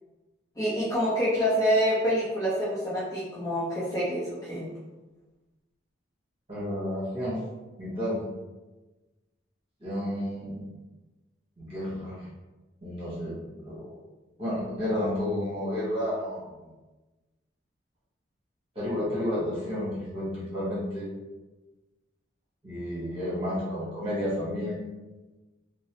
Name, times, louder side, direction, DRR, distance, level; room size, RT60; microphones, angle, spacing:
voice 1, 0.6-4.7, equal, 20° left, -9 dB, 0.5 m, -26 dB
voice 2, 6.5-7.4 7.8-8.2 9.8-10.6 11.6-12.3 12.8-14.0 14.4-16.4 18.7-21.1 22.6-24.8, left 1 dB, 30° right, -9 dB, 1.3 m, -31 dB
2.9 x 2.0 x 2.9 m, 1.2 s
head